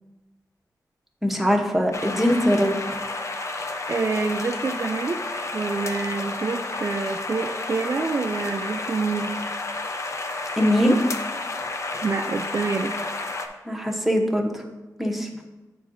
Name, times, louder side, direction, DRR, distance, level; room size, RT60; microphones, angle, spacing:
voice 1, 1.2-2.7 10.6-11.0 13.7-14.6 15.0-15.5, equal, 5° right, 1 dB, 0.9 m, -21 dB
sound 1, 1.9-13.5, left 2 dB, 45° left, 0.6 m, -31 dB
voice 2, 3.9-5.2 5.5-9.3 12.0-13.2, right 4 dB, 45° right, 4 dB, 0.4 m, -27 dB
9.0 x 4.6 x 2.6 m, 1.1 s
wide cardioid pair, 90°, 7 cm